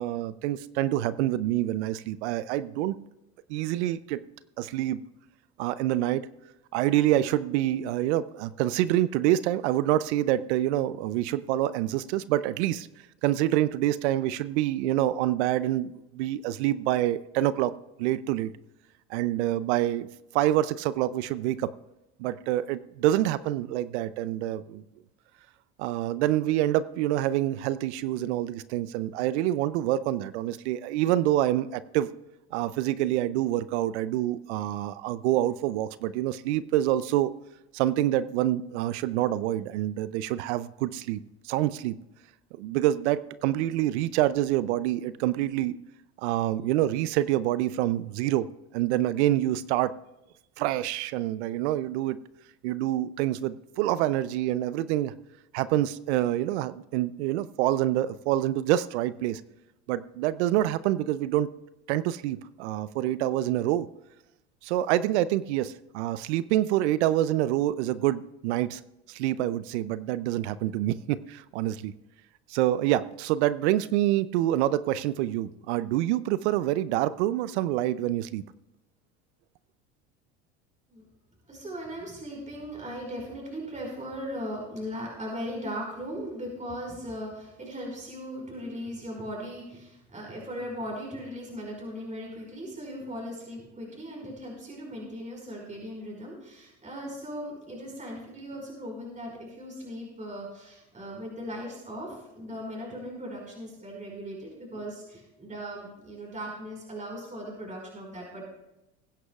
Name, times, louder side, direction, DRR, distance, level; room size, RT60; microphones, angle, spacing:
voice 1, 0.0-2.9 3.5-4.2 4.6-5.0 5.6-6.3 6.7-12.9 13.2-17.7 18.0-18.5 19.1-20.1 20.3-21.7 22.2-24.8 25.8-32.1 32.5-37.3 37.7-41.2 41.4-42.0 42.6-45.8 46.2-48.5 48.7-49.9 50.6-52.2 52.6-55.1 55.5-59.4 59.9-61.5 61.9-63.9 64.6-68.8 69.1-71.9 72.5-78.4, right 13 dB, 75° right, 17 dB, 0.6 m, -26 dB
voice 2, 81.5-108.4, equal, 20° right, -2 dB, 5.1 m, -38 dB
20.5 x 9.9 x 2.4 m, 0.92 s
hypercardioid pair, 85°, 34 cm